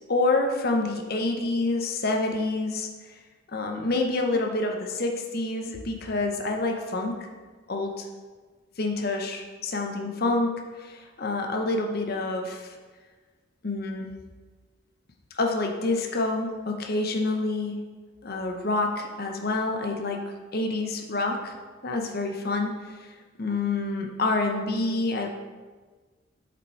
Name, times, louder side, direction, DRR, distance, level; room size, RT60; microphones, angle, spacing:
voice 1, 0.1-2.9 3.5-7.1 7.7-8.1 8.8-12.8 13.6-14.1 15.3-17.8 18.2-20.2 20.5-21.5 21.8-23.1 23.4-25.3, left 2 dB, 50° left, 2 dB, 0.8 m, -27 dB
8.0 x 5.2 x 4.4 m, 1.4 s
head